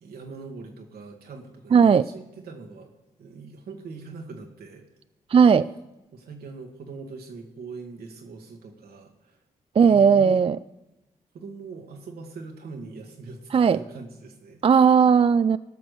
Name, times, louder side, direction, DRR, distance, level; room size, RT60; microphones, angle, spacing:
voice 1, 0.0-2.9 3.2-4.8 6.1-9.4 9.8-10.4 11.3-14.6, right 4 dB, 80° right, 3 dB, 1.8 m, -41 dB
voice 2, 1.7-2.0 5.3-5.7 9.8-10.6 13.5-13.8 14.6-15.6, right 6 dB, 35° right, 15 dB, 0.3 m, -17 dB
16.0 x 6.1 x 6.6 m, 0.96 s
supercardioid pair, 45°, 16 cm